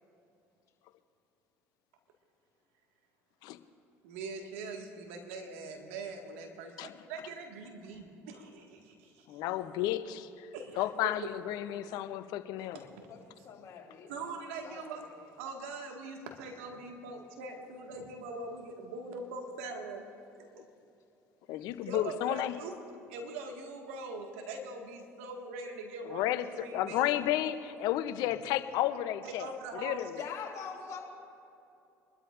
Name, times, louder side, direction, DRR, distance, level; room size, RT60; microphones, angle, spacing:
voice 1, 4.0-9.4 10.5-11.1 12.7-12.9 14.1-15.0 15.4-20.0 20.4-20.7 21.8-22.7 23.1-27.2 29.2-30.2, right 3 dB, 80° right, 2 dB, 1.8 m, -42 dB
voice 2, 9.3-10.5 10.8-12.8 21.5-22.5 26.0-30.2, left 13 dB, 70° left, 11 dB, 0.7 m, -32 dB
voice 3, 13.1-14.3 14.6-15.1 30.1-31.0, left 6 dB, 50° left, -1 dB, 3.3 m, -44 dB
26.0 x 12.5 x 2.6 m, 2.7 s
hypercardioid pair, 70°, 7 cm